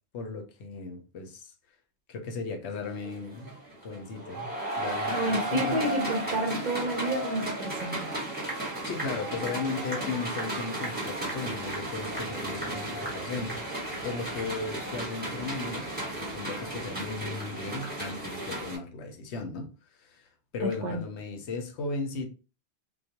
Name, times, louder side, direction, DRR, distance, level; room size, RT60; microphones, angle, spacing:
voice 1, 0.1-1.5 2.1-3.5 3.8-5.8 8.8-19.7 20.0-20.3 20.5-22.3, left 4 dB, 85° left, 0.9 m, -36 dB
sound 1, 2.8-18.8, right 1 dB, 10° right, 0.9 m, -34 dB
voice 2, 5.1-8.1 20.6-21.0, right 1 dB, 55° right, 0.5 m, -30 dB
2.3 x 2.1 x 2.8 m
omnidirectional pair, 1.1 m